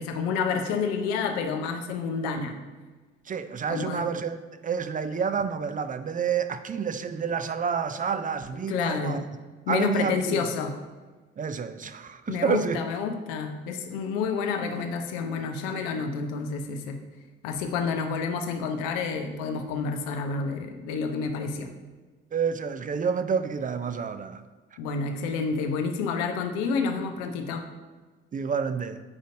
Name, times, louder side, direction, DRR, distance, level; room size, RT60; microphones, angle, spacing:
voice 1, 0.0-2.5 3.7-4.1 8.7-9.2 9.7-10.7 12.3-17.0 17.4-21.7 24.8-27.7, left 5 dB, 70° left, 6 dB, 0.7 m, -29 dB
voice 2, 3.3-9.2 9.7-10.5 11.4-12.9 22.3-24.4 28.3-29.0, right 6 dB, 30° right, 11 dB, 0.5 m, -29 dB
8.4 x 5.0 x 2.7 m, 1.4 s
figure-of-eight pair, 40°, 29 cm